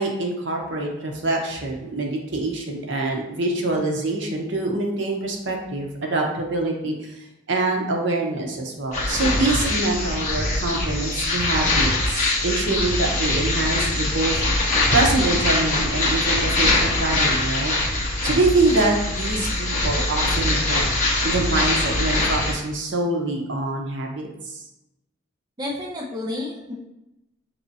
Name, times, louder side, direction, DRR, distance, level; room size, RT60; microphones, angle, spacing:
voice 1, 0.0-14.4 14.9-17.7 18.2-20.9 21.2-24.3 24.5-24.6, right 2 dB, 70° right, 1 dB, 0.8 m, -25 dB
sound 1, 8.9-22.5, left 2 dB, 40° left, 1.2 m, -23 dB
voice 2, 25.6-26.7, left 2 dB, 20° right, -2 dB, 0.5 m, -30 dB
5.8 x 3.0 x 2.7 m, 0.92 s
head